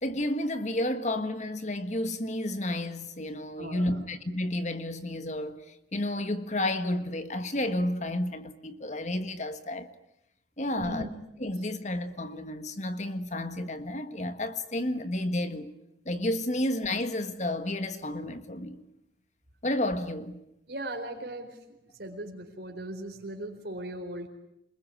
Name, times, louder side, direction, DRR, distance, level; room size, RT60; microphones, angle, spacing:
voice 1, 0.0-9.9 10.6-11.1 11.4-15.7 16.0-18.8 19.6-20.4, left 1 dB, 40° left, 1.6 m, -31 dB
voice 2, 3.6-4.0 10.7-11.1 20.7-21.6 22.0-24.3, right 1 dB, 65° right, 4.4 m, -38 dB
28.0 x 21.5 x 9.9 m
head